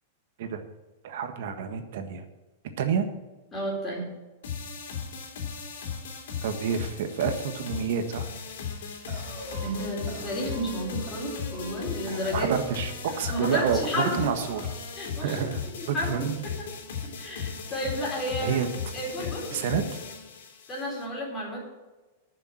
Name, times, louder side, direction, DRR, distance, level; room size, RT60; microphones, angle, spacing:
voice 1, 1.0-2.2 2.8-3.1 6.4-8.3 12.3-14.6 15.2-15.6 15.9-16.3 18.4-18.7 19.5-19.8, right 7 dB, 55° right, 7 dB, 1.5 m, -28 dB
voice 2, 3.5-4.1 9.6-12.5 13.3-14.3 15.0-15.4 15.8-16.7 17.2-18.6 18.9-19.8 20.7-21.6, equal, 15° left, -4 dB, 4.0 m, -32 dB
sound 1, 4.4-21.0, left 6 dB, 70° left, 3.3 m, -37 dB
sound 2, 9.1-12.8 13.1-13.8 14.1-14.8, right 2 dB, 30° right, 5.0 m, -42 dB
11.5 x 6.9 x 7.9 m, 1.2 s
supercardioid pair, 175°, 0 cm